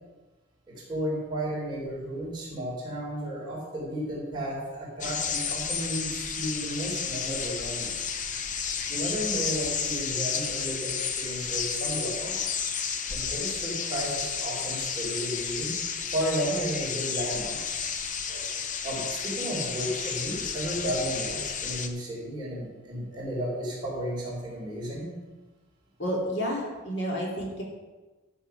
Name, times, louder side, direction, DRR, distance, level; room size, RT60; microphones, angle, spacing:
voice 1, 0.7-8.1 8.9-12.4 13.1-15.7 16.1-17.9 18.8-25.1, right 1 dB, 20° right, -6 dB, 4.2 m, -33 dB
sound 1, 5.0-21.9, left 6 dB, 35° left, 0.8 m, -32 dB
voice 2, 26.0-27.6, equal, 55° left, -2 dB, 2.6 m, -31 dB
12.5 x 7.2 x 5.9 m, 1.2 s
head